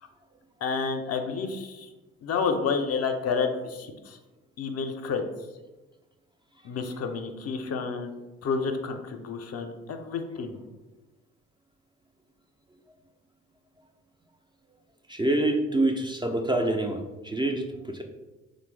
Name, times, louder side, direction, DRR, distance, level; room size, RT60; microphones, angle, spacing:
voice 1, 0.6-1.9 2.2-4.2 4.6-5.2 6.6-8.1 8.4-10.6, left 5 dB, 50° left, 5 dB, 0.5 m, -30 dB
voice 2, 15.1-18.0, right 1 dB, 15° right, 3 dB, 0.3 m, -26 dB
3.1 x 2.1 x 3.1 m, 1.1 s
supercardioid pair, 50°, 31 cm